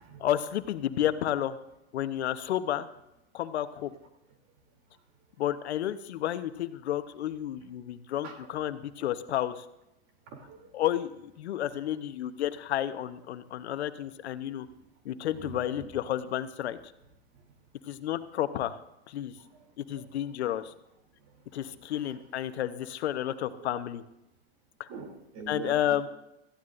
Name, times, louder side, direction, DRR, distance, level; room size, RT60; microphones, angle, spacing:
voice 1, 0.2-1.6 1.9-2.9 3.3-3.9 5.4-9.6 10.7-14.7 15.0-16.8 17.9-18.8 19.1-19.3 19.8-20.7 21.5-24.0 24.8-24.9 25.5-26.1, left 11 dB, 80° left, 11 dB, 1.1 m, -31 dB
voice 2, 10.3-10.6 15.3-15.8 19.9-20.0 22.0-22.1 23.5-23.7 24.9-26.0, right 4 dB, 50° right, 3 dB, 3.2 m, -43 dB
17.0 x 14.5 x 2.6 m, 0.88 s
hypercardioid pair, 115°, 32 cm